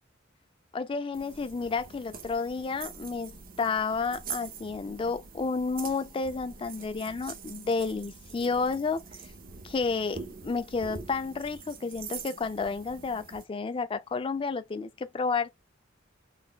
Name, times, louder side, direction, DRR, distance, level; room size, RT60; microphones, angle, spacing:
voice 1, 0.7-9.0 9.6-15.5, left 4 dB, 25° left, 0.3 m, -31 dB
sound 1, 1.1-13.4, right 6 dB, 45° right, 0.5 m, -44 dB
3.9 x 2.2 x 2.2 m
head